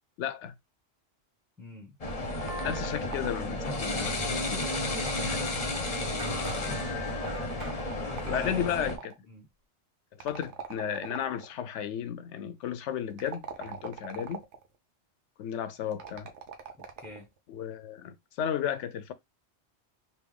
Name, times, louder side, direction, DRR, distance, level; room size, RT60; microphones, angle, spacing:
voice 1, 0.2-0.6 2.6-5.6 8.0-9.1 10.2-14.4 15.4-16.3 17.5-19.1, left 9 dB, 80° left, 0.9 m, -34 dB
voice 2, 1.6-2.0 6.5-6.9 8.0-8.9 9.2-9.5 17.0-17.3, left 3 dB, ahead, 1.0 m, -43 dB
sound 1, 2.0-9.0, left 2 dB, 35° left, 0.8 m, -32 dB
sound 2, 2.1-3.7 4.5-6.4 7.3-9.2 10.2-11.5 13.1-14.7 15.9-17.2, right 7 dB, 75° right, 1.0 m, -43 dB
sound 3, 6.2-7.8, right 2 dB, 50° right, 1.3 m, -43 dB
3.6 x 2.8 x 3.4 m
omnidirectional pair, 1.2 m